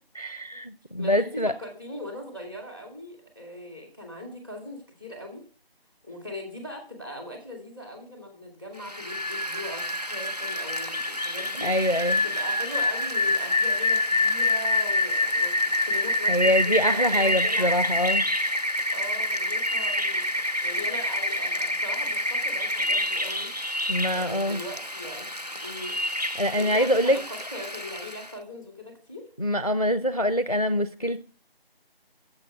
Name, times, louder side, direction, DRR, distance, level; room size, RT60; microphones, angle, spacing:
voice 1, 0.1-1.5 11.6-12.2 16.3-18.3 23.9-24.6 26.4-27.2 29.4-31.2, equal, 40° left, 0.5 m, -24 dB
voice 2, 1.0-5.4 6.0-11.7 12.1-17.9 18.9-23.5 24.1-25.3 25.6-26.0 26.5-29.3, left 1 dB, 20° right, 2.7 m, -40 dB
Rain, 8.8-28.3, left 1 dB, 45° right, 0.4 m, -27 dB
9.5 x 7.5 x 6.2 m
figure-of-eight pair, 180°, 30 cm